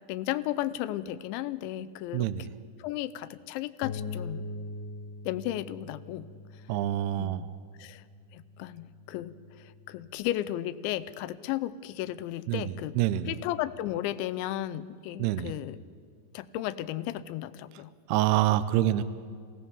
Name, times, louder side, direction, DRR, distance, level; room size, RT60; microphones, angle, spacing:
voice 1, 0.0-2.3 2.8-4.5 5.3-6.3 7.2-8.0 8.3-12.9 13.3-15.8 16.3-17.9, left 13 dB, 85° left, 14 dB, 3.0 m, -34 dB
voice 2, 2.1-2.5 6.7-7.5 12.5-13.3 15.2-15.5 18.1-19.0, right 13 dB, 80° right, 13 dB, 2.5 m, -26 dB
Bass guitar, 3.8-10.1, left 3 dB, 70° left, 2.1 m, -42 dB
28.0 x 16.5 x 7.1 m, 2.1 s
omnidirectional pair, 5.2 m